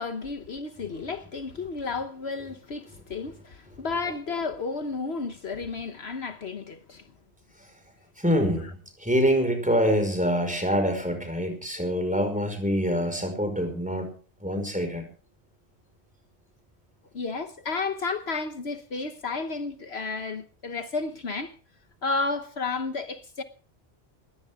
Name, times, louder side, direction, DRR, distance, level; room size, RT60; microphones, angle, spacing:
voice 1, 0.0-7.0 17.1-21.5 22.0-23.4, left 4 dB, 65° left, 1.4 m, -32 dB
voice 2, 8.2-14.1 14.4-15.0, equal, 5° right, 5.2 m, -25 dB
21.0 x 16.5 x 3.7 m
omnidirectional pair, 1.2 m